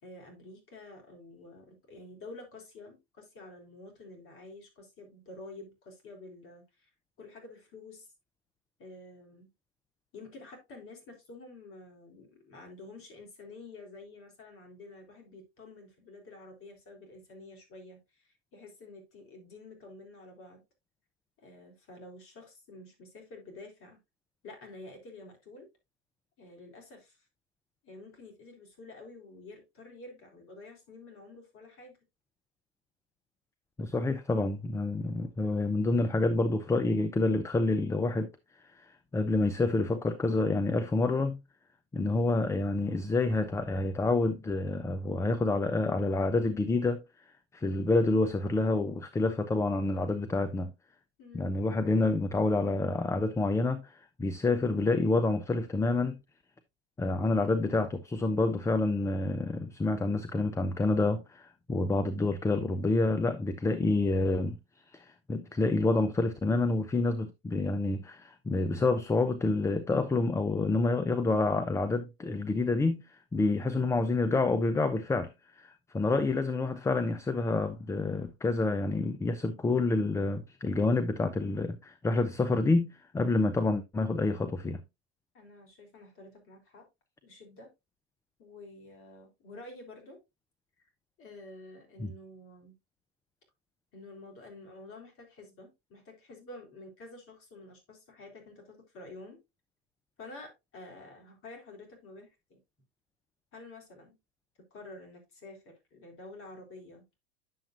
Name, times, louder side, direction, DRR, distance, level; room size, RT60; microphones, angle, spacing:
voice 1, 0.0-6.9 7.2-8.1 8.8-9.5 10.1-20.6 21.4-24.0 24.4-25.7 26.4-27.3 27.8-32.0 51.2-51.5 85.3-86.9 87.2-87.7 88.4-90.2 91.2-92.7 93.9-99.4 100.2-102.6 103.5-104.2 104.7-107.0, left 2 dB, 40° left, 3.5 m, -49 dB
voice 2, 33.8-38.3 38.7-41.4 41.9-47.0 47.5-50.7 51.3-56.2 57.0-64.6 64.9-84.8 92.0-92.1, left 3 dB, 10° left, 0.5 m, -28 dB
9.4 x 7.0 x 2.4 m
hypercardioid pair, 100°, 34 cm